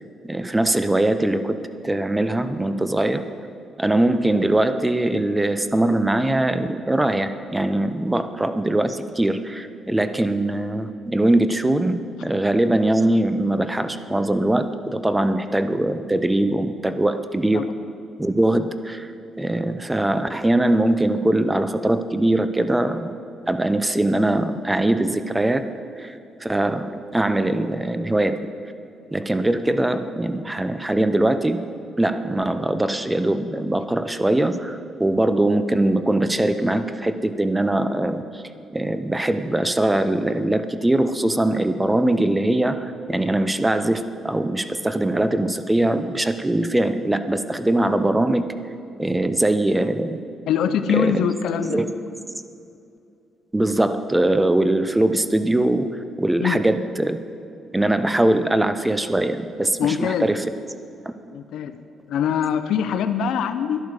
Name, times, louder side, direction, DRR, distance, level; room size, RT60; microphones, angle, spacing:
voice 1, 0.2-3.3 3.8-17.7 18.2-23.1 23.5-25.7 26.0-28.4 29.1-31.6 32.0-38.4 38.7-48.5 49.0-50.2 50.9-51.3 51.7-51.9 53.5-57.2 57.7-60.4, right 1 dB, 10° right, 10 dB, 0.7 m, -21 dB
voice 2, 50.5-51.8 56.4-56.6 59.8-60.3 61.3-63.8, left 8 dB, 80° left, 10 dB, 0.7 m, -23 dB
11.5 x 10.5 x 6.6 m, 2.5 s
cardioid pair, 90°, 0 cm